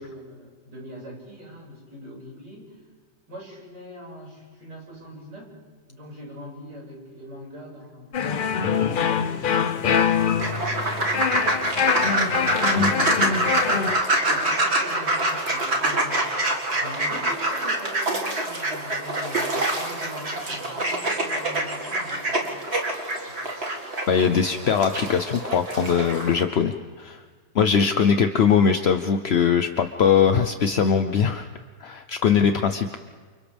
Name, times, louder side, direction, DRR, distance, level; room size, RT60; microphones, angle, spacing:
voice 1, 0.0-2.8 3.3-5.5 5.9-10.5 14.0-22.5 23.2-23.4, equal, 80° right, -4 dB, 6.6 m, -42 dB
sound 1, 8.1-14.0, left 7 dB, 85° left, 0.4 m, -24 dB
sound 2, 10.4-26.4, right 1 dB, 40° right, 2.3 m, -26 dB
voice 2, 24.1-27.2 27.5-31.5 31.8-32.9, left 7 dB, 55° left, 7 dB, 0.7 m, -21 dB
29.5 x 28.0 x 3.5 m, 1.5 s
omnidirectional pair, 1.9 m